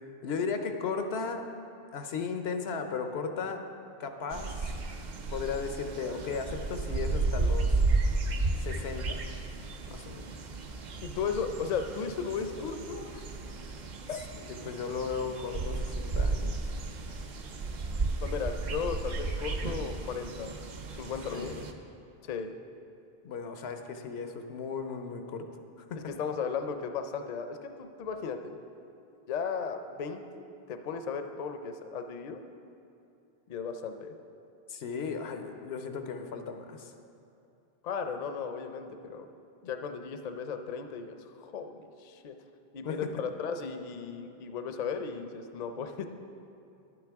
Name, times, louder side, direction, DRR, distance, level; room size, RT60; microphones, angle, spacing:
voice 1, 0.2-1.5 1.9-3.6 4.0-4.7 5.3-7.7 8.6-9.2 9.9-10.3 14.5-16.6 21.3-21.7 23.2-25.5 25.9-26.1 34.7-36.9 42.8-43.1, left 5 dB, 85° left, 6 dB, 0.9 m, -36 dB
sound 1, 4.3-21.7, right 3 dB, 55° right, 0.7 m, -33 dB
voice 2, 11.0-13.2 14.1-14.2 18.2-20.6 20.9-21.7 22.2-22.5 25.9-28.6 29.3-32.4 33.5-34.1 37.8-39.3 39.6-42.4 42.7-46.0, left 6 dB, 50° left, 7 dB, 0.6 m, -36 dB
11.0 x 8.6 x 3.5 m, 2.6 s
omnidirectional pair, 1.0 m